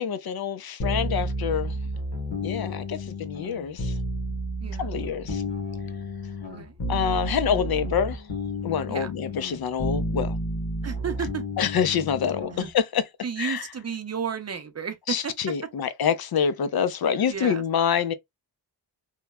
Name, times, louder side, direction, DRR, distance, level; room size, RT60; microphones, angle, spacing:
voice 1, 0.0-1.7 2.4-3.9 4.8-5.4 6.9-8.2 8.6-10.4 11.6-13.0 13.4-13.7 15.1-18.1, left 7 dB, 60° left, 0.5 m, -26 dB
sound 1, 0.8-12.7, equal, 75° left, 1.0 m, -31 dB
voice 2, 10.8-11.4 12.5-12.7 13.2-15.3 17.3-17.6, right 6 dB, 40° right, 0.6 m, -32 dB
3.0 x 2.1 x 2.2 m
wide cardioid pair, 105°, 42 cm